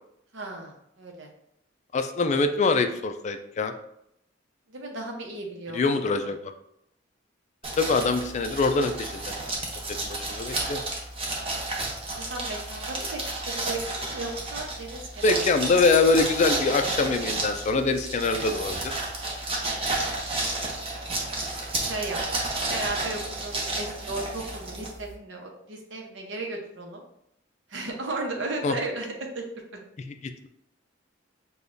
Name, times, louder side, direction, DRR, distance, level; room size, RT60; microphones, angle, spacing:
voice 1, 0.3-1.3 4.7-5.8 12.1-13.2 13.5-15.5 21.8-22.2 22.7-27.0 27.7-29.4 29.7-29.8, right 2 dB, 75° right, 2 dB, 0.8 m, -35 dB
voice 2, 1.9-3.7 5.7-6.5 7.8-9.2 10.0-10.8 15.2-19.0 28.6-28.7 30.1-30.2, left 3 dB, 40° left, 7 dB, 0.3 m, -24 dB
sound 1, 7.6-25.1, right 2 dB, 30° right, 0.8 m, -32 dB
6.7 x 2.3 x 2.6 m, 0.76 s
head